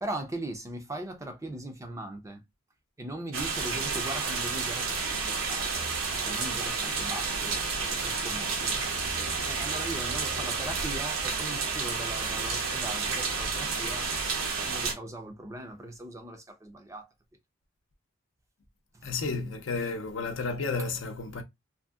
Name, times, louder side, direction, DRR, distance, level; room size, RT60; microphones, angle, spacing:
voice 1, 0.0-2.4 3.0-5.9 6.2-8.9 9.5-14.1 14.6-17.1 18.9-19.1, right 1 dB, 15° right, 0.5 m, -39 dB
sound 1, 3.3-14.9, right 4 dB, 85° right, 0.9 m, -30 dB
voice 2, 19.0-21.4, left 4 dB, 65° left, 0.6 m, -32 dB
2.7 x 2.6 x 2.3 m
head